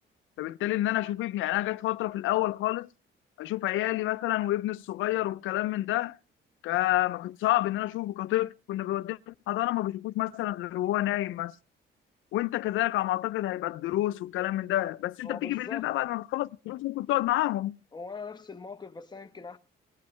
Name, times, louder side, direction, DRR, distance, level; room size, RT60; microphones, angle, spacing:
voice 1, 0.4-2.9 3.4-6.2 6.6-11.5 12.3-17.8, left 15 dB, 80° left, 0.5 m, -29 dB
voice 2, 15.2-15.9 17.9-19.6, left 4 dB, 20° left, 1.1 m, -41 dB
19.5 x 8.4 x 3.3 m
cardioid pair, 90°, 20 cm